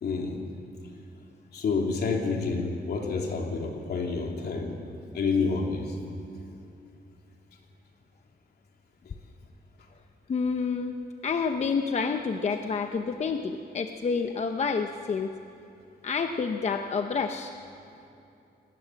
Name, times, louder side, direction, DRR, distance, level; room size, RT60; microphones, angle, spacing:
voice 1, 0.0-0.4 1.5-4.8 5.1-5.9, left 4 dB, 65° left, 1 dB, 3.4 m, -28 dB
voice 2, 10.3-10.9 11.2-15.3 16.0-17.6, left 5 dB, 40° left, 6 dB, 0.8 m, -28 dB
28.5 x 19.5 x 7.6 m, 2.8 s
wide cardioid pair, 170°, 18 cm